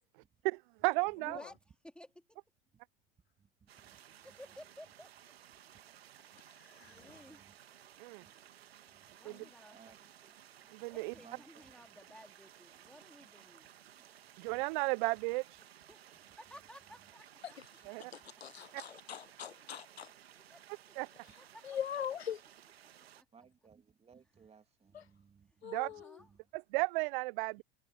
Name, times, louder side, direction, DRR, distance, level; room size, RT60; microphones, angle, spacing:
voice 1, 0.4-1.4 8.0-8.2 9.3-9.4 10.7-11.1 14.4-15.4 17.9-18.1 18.7-18.8 21.0-21.1 25.6-25.9 26.5-27.6, right 27 dB, 55° right, 0.6 m, -34 dB
voice 2, 1.2-2.4 3.8-5.1 6.8-7.4 9.1-10.3 10.9-13.7 15.9-17.6 18.5-18.6 19.0-19.1 19.6-19.7 20.1-21.0 21.4-21.7 23.1-23.3 24.8-24.9 25.5-25.6 25.9-26.3, left 1 dB, 5° left, 2.5 m, -56 dB
voice 3, 3.4-3.7 6.8-7.5 8.9-9.1 9.7-10.0 11.1-11.7 14.5-14.6 23.3-25.7 26.2-26.4, right 6 dB, 20° right, 2.7 m, -61 dB
sound 1, 3.7-23.2, right 11 dB, 80° right, 1.6 m, -58 dB
voice 4, 6.6-7.2 9.3-9.5 17.4-17.5 18.1-20.1 21.6-22.4 24.9-25.1 25.6-26.2, left 9 dB, 90° left, 1.0 m, -42 dB
hypercardioid pair, 95°, 31 cm